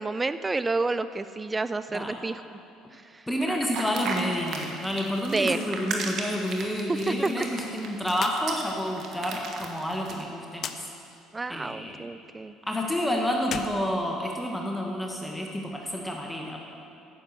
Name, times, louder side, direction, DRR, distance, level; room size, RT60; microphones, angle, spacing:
voice 1, 0.0-2.6 2.9-3.3 5.3-5.6 6.9-7.1 11.3-12.5, right 3 dB, 20° right, 13 dB, 0.3 m, -29 dB
voice 2, 3.3-10.8 11.5-12.0 12.6-16.6, equal, 5° left, 0 dB, 1.2 m, -29 dB
sound 1, 3.7-10.2, right 4 dB, 55° right, 1.3 m, -36 dB
sound 2, 8.1-8.4 8.7-8.8 10.6-10.8 13.4-14.7, left 7 dB, 50° left, 0.6 m, -37 dB
10.0 x 6.6 x 7.5 m, 2.7 s
supercardioid pair, 80°, 0 cm